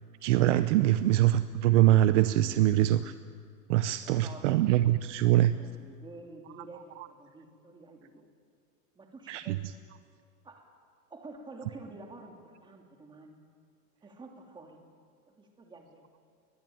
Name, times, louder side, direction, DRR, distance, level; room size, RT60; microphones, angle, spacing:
voice 1, 0.2-3.1 3.7-5.6 6.7-7.1 9.3-9.7, right 14 dB, 50° right, 13 dB, 0.8 m, -24 dB
voice 2, 4.0-4.8 5.4-8.3 9.0-9.7 10.4-10.7 11.1-13.4 14.0-14.8 15.3-16.0, right 3 dB, 10° right, 3 dB, 2.5 m, -49 dB
22.0 x 20.5 x 9.2 m, 2.2 s
supercardioid pair, 160°, 46 cm